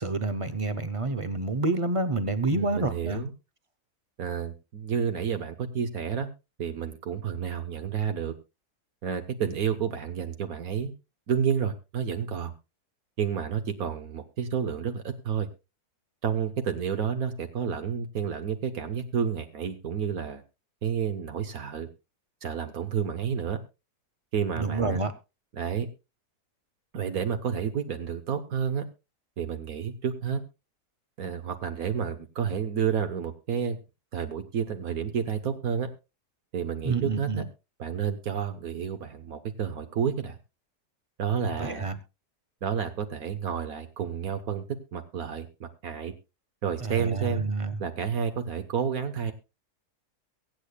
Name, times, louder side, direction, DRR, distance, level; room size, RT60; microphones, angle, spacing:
voice 1, 0.0-3.2 24.6-25.1 36.8-37.4 41.6-42.0 46.8-47.8, right 3 dB, 35° right, 13 dB, 0.5 m, -28 dB
voice 2, 2.5-3.3 4.2-6.3 6.6-8.3 9.0-10.9 11.3-12.5 13.2-15.5 16.2-20.4 20.8-21.9 22.4-23.6 24.3-25.0 25.5-25.9 26.9-28.9 29.4-30.4 31.2-33.8 34.1-35.9 36.5-37.4 37.8-40.4 41.2-41.9 42.6-44.6 44.9-46.1 46.6-47.5 47.8-49.3, right 7 dB, 70° right, 7 dB, 1.5 m, -30 dB
23.0 x 8.5 x 2.3 m, 0.27 s
omnidirectional pair, 1.7 m